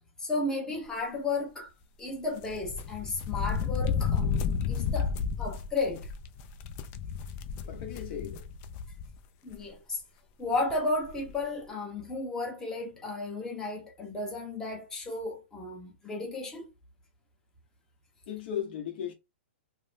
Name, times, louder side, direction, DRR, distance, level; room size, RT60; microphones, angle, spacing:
voice 1, 0.2-1.7 2.0-6.1 9.4-10.0 10.4-16.7, left 2 dB, 10° left, 0.7 m, -33 dB
sound 1, 2.4-9.2 9.5-9.6 10.7-10.8 11.0-11.3, left 6 dB, 30° left, 0.3 m, -32 dB
voice 2, 7.7-8.5 18.3-19.1, left 9 dB, 55° left, 0.7 m, -36 dB
2.4 x 2.0 x 3.3 m
hypercardioid pair, 140°, 7 cm